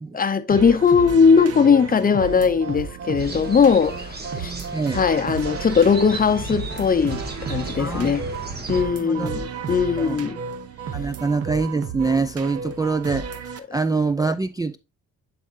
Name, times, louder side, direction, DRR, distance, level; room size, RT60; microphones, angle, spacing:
voice 1, 0.1-4.5 4.9-8.2 8.7-10.4, left 6 dB, 30° left, 0.7 m, -19 dB
sound 1, 0.5-13.6, right 6 dB, 55° right, 0.9 m, -33 dB
sound 2, 3.2-8.8, right 2 dB, 35° right, 1.8 m, -35 dB
voice 2, 4.7-5.0 7.8-8.1 8.9-9.3 10.0-10.2 10.9-14.8, right 4 dB, 15° right, 0.4 m, -25 dB
11.0 x 4.2 x 2.6 m
cardioid pair, 90°, 30 cm